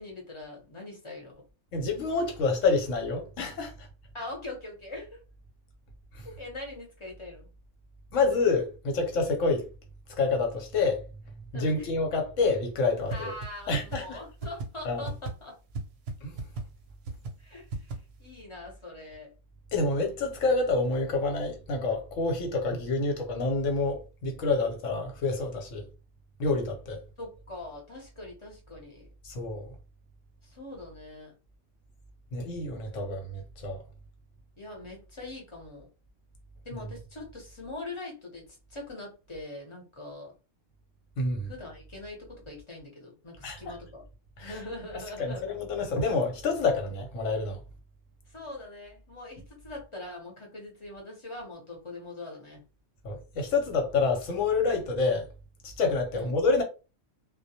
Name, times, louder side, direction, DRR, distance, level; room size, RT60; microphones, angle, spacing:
voice 1, 0.0-1.3 4.1-5.2 6.4-7.5 11.5-11.9 13.1-15.6 17.4-19.3 27.2-29.1 30.4-31.3 34.6-35.9 36.6-40.3 41.4-44.0 44.4-45.5 48.3-52.6 56.1-56.3, left 2 dB, 30° left, 0.8 m, -42 dB
voice 2, 1.7-3.9 6.2-6.3 8.1-9.7 10.2-11.1 11.5-13.3 13.7-14.2 14.8-15.1 16.2-16.3 19.7-25.8 26.4-27.0 29.2-29.7 32.3-33.8 41.2-41.5 43.4-43.7 44.4-44.5 45.2-47.6 53.0-55.3 55.6-56.6, left 3 dB, 85° left, 1.1 m, -28 dB
sound 1, 13.1-13.2 13.4-13.5 13.7-14.0 14.4-14.7 15.1-15.3 15.7-15.8 16.1-16.2 16.4-16.6 17.1-17.3 17.7-17.9, right 3 dB, 65° right, 0.7 m, -33 dB
2.2 x 2.1 x 2.7 m
omnidirectional pair, 1.3 m